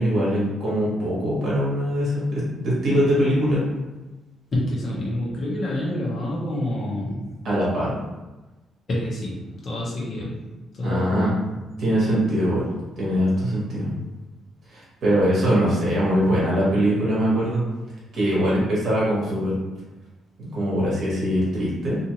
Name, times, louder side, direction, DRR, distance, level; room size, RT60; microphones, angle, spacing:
voice 1, 0.0-3.6 7.4-8.0 10.8-11.3 11.8-12.6 13.0-13.9 14.7-17.6 18.1-19.5 20.4-22.0, equal, 50° right, -7 dB, 1.2 m, -22 dB
voice 2, 4.5-7.2 8.9-11.4, left 1 dB, 35° left, -5 dB, 0.8 m, -28 dB
2.6 x 2.5 x 2.9 m, 1.1 s
cardioid pair, 170°, 0 cm